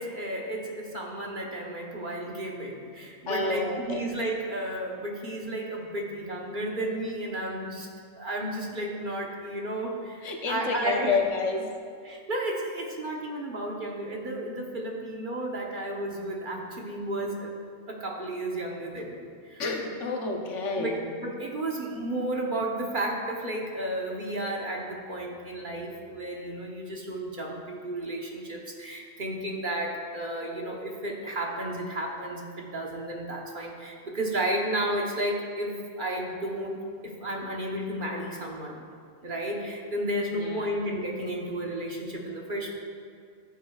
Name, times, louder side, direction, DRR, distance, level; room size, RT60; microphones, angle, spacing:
voice 1, 0.0-7.9 8.2-11.2 12.0-17.5 17.9-19.6 20.7-36.8 37.0-38.8 39.2-42.7, right 1 dB, 45° right, -1 dB, 1.1 m, -33 dB
voice 2, 3.3-4.0 10.2-11.7 19.0-19.1 19.6-21.0 40.3-40.6, left 4 dB, 75° left, 2 dB, 1.3 m, -29 dB
14.0 x 8.2 x 2.3 m, 2.2 s
omnidirectional pair, 1.3 m